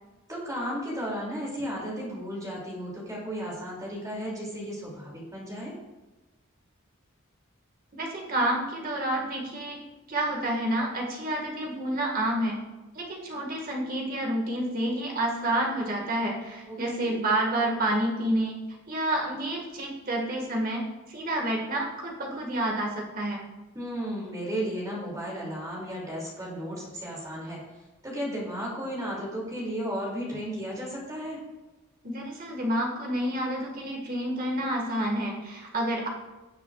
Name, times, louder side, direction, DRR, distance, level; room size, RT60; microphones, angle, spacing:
voice 1, 0.3-5.7 16.7-17.2 23.7-27.6 28.0-31.4, equal, 15° right, -4 dB, 2.8 m, -34 dB
voice 2, 7.9-9.8 10.1-12.6 12.9-18.6 18.9-20.8 21.1-23.4 32.0-36.1, right 1 dB, 45° right, -1 dB, 1.9 m, -29 dB
16.5 x 7.0 x 2.5 m, 1.1 s
head